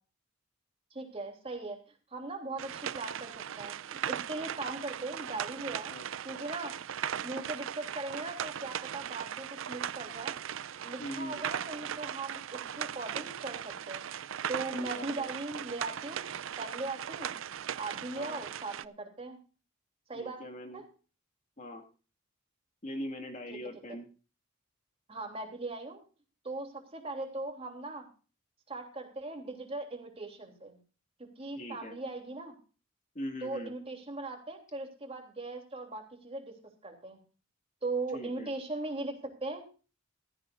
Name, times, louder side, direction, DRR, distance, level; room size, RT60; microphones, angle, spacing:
voice 1, 0.9-1.8 2.1-5.9 6.2-6.7 7.2-10.4 10.8-14.0 14.5-17.3 17.8-19.4 20.1-20.4 20.7-20.8 25.1-26.0 26.4-28.1 28.7-30.8 31.2-32.5 33.4-36.5 36.8-37.2 37.8-39.1 39.4-39.7, right 2 dB, 30° right, 3 dB, 3.2 m, -39 dB
sound 1, 2.6-18.8, right 9 dB, 70° right, 0.5 m, -38 dB
voice 2, 11.0-11.4 14.6-15.3 18.1-18.4 20.1-20.8 21.6-21.8 22.8-24.1 31.5-32.0 33.1-33.7 38.1-38.5, equal, 40° left, 4 dB, 2.1 m, -41 dB
15.5 x 15.0 x 2.6 m, 0.35 s
head